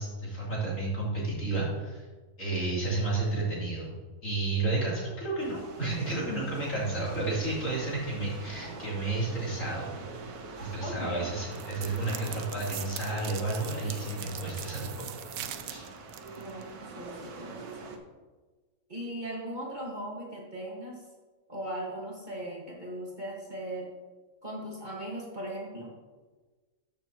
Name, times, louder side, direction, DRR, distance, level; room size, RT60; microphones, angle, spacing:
voice 1, 0.0-2.1 2.4-3.9 4.2-10.0 10.6-15.1 15.6-15.9, right 2 dB, 60° left, -7 dB, 3.6 m, -31 dB
sound 1, 5.4-18.0, right 3 dB, 90° right, 1.5 m, -44 dB
voice 2, 10.8-11.3 16.4-18.0 18.9-21.0 21.5-23.9 24.4-25.9, right 1 dB, 30° right, -4 dB, 1.7 m, -38 dB
sound 2, 11.5-16.6, right 11 dB, 70° right, 1.0 m, -42 dB
13.5 x 7.0 x 2.9 m, 1.3 s
omnidirectional pair, 1.6 m